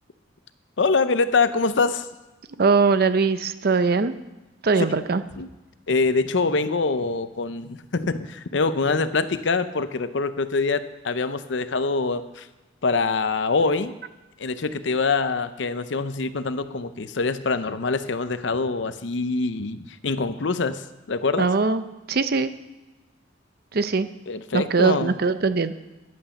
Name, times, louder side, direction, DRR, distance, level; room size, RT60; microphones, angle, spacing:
voice 1, 0.8-2.1 5.4-5.5 5.9-12.5 12.8-13.9 14.4-20.8 21.1-21.5 24.3-25.1, left 4 dB, 65° left, 12 dB, 0.7 m, -24 dB
voice 2, 2.6-4.1 4.6-5.2 21.4-22.5 23.7-24.1 24.5-25.7, right 4 dB, 55° right, 12 dB, 0.6 m, -21 dB
11.0 x 8.7 x 7.1 m, 1.1 s
head